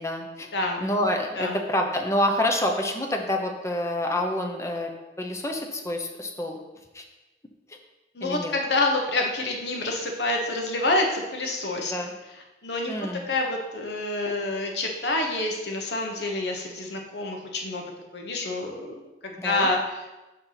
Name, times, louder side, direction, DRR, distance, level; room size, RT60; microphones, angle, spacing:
voice 1, 0.0-0.5 0.8-4.9 5.2-6.6 6.9-7.0 8.2-8.5 11.9-12.1 12.9-13.3 19.4-19.7, left 1 dB, 15° left, 2 dB, 0.8 m, -27 dB
voice 2, 8.1-11.9 12.6-12.9 13.3-17.8 18.1-20.0, left 2 dB, 70° left, 1 dB, 1.2 m, -27 dB
6.7 x 4.5 x 5.8 m, 1.1 s
head